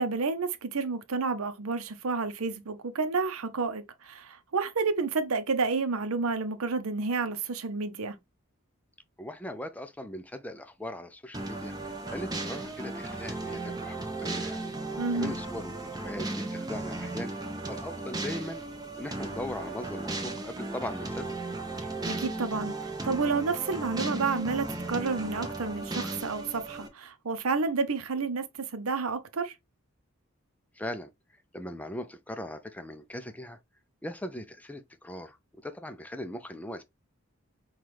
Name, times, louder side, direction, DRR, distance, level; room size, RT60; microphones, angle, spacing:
voice 1, 0.0-8.1 15.0-15.3 22.1-28.4 28.7-29.5, right 4 dB, 75° right, 0.7 m, -30 dB
voice 2, 9.2-11.7 12.1-14.6 15.1-17.3 17.7-18.6 19.0-21.3 30.7-31.1 31.5-33.6 34.0-35.4 35.6-36.8, left 1 dB, 5° left, 0.4 m, -39 dB
sound 1, 11.3-26.9, right 2 dB, 15° right, 0.7 m, -36 dB
5.8 x 2.4 x 3.2 m
head